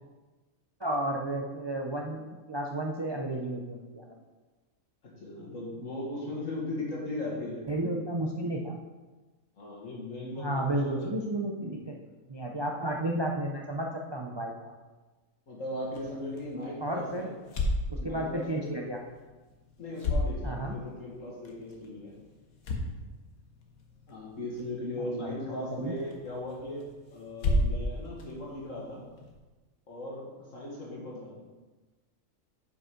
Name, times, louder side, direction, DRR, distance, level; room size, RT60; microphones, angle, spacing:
voice 1, 0.8-4.2 7.7-8.8 10.4-11.9 12.3-14.7 16.8-17.3 17.9-19.0 20.4-20.8 25.2-25.3 25.7-25.9, right 1 dB, 30° right, 0 dB, 0.4 m, -32 dB
voice 2, 5.0-7.6 9.6-11.1 11.6-11.8 15.5-17.3 17.9-18.6 19.8-22.1 24.1-29.1 29.9-31.4, left 1 dB, 65° left, -3 dB, 2.3 m, -38 dB
sound 1, 15.8-29.4, left 1 dB, 90° left, 1.6 m, -36 dB
8.0 x 5.3 x 5.2 m, 1.2 s
omnidirectional pair, 1.5 m